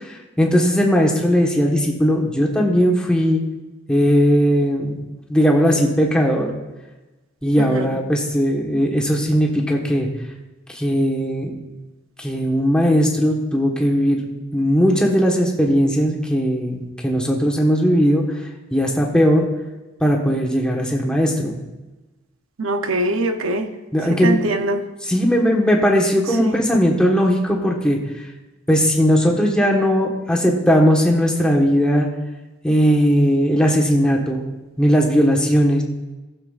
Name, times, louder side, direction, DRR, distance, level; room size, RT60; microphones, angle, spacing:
voice 1, 0.4-3.4 3.9-5.0 5.3-6.5 7.4-10.1 10.7-11.5 12.2-14.2 14.5-18.2 18.7-19.5 20.0-21.6 23.9-24.4 25.0-28.0 28.7-32.1 32.6-34.4 34.8-35.8, equal, 5° left, -2 dB, 1.3 m, -18 dB
voice 2, 7.6-8.0 22.6-23.7 24.2-24.8 26.4-26.6, right 2 dB, 75° right, 7 dB, 0.7 m, -22 dB
18.0 x 7.1 x 2.4 m, 1.1 s
head